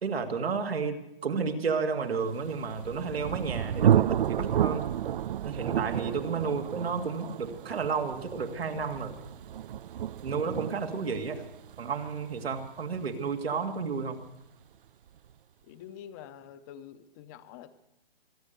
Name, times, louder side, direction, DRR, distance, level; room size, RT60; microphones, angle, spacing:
voice 1, 0.0-4.9 5.4-9.1 10.2-11.4 11.8-14.2, right 5 dB, 85° right, 5 dB, 2.1 m, -32 dB
Thunder, 2.5-14.0, right 10 dB, 60° right, 0.5 m, -31 dB
voice 2, 15.6-17.7, left 9 dB, 20° left, 12 dB, 0.6 m, -46 dB
23.5 x 9.1 x 6.8 m, 0.84 s
hypercardioid pair, 155°, 30 cm